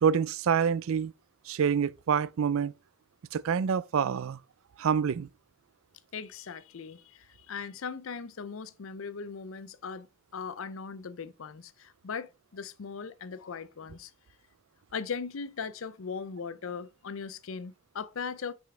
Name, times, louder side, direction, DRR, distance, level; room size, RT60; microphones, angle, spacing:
voice 1, 0.0-1.1 1.5-2.7 3.3-4.4 4.8-5.3, right 7 dB, 65° right, 0.4 m, -27 dB
voice 2, 6.1-10.1 10.3-14.1 14.9-18.5, left 5 dB, 65° left, 0.5 m, -39 dB
5.8 x 5.1 x 3.3 m
head